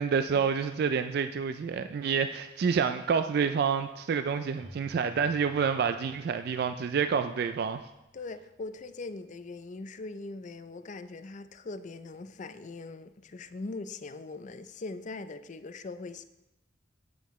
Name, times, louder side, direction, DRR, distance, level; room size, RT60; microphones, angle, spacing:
voice 1, 0.0-7.8, right 6 dB, 60° right, 9 dB, 0.3 m, -28 dB
Keyboard (musical), 4.6-9.1, left 1 dB, 75° right, 3.0 m, -56 dB
voice 2, 8.1-16.3, left 3 dB, 40° left, 11 dB, 0.4 m, -41 dB
9.2 x 8.6 x 3.1 m, 0.92 s
head